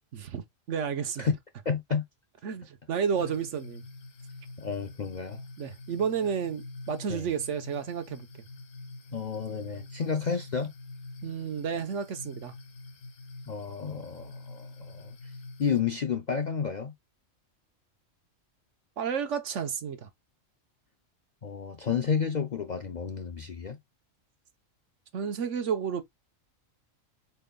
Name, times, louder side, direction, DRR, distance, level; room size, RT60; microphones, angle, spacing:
voice 1, 0.1-1.3 2.4-3.8 5.6-8.3 11.2-12.5 19.0-20.1 25.1-26.0, right 7 dB, 65° right, 1.2 m, -31 dB
voice 2, 1.7-2.0 4.6-5.4 7.1-7.3 9.1-10.7 13.5-15.1 15.6-16.9 21.4-23.8, left 6 dB, 55° left, 0.5 m, -31 dB
sound 1, 3.1-15.8, left 2 dB, 75° left, 1.4 m, -46 dB
5.2 x 4.3 x 2.2 m
omnidirectional pair, 1.4 m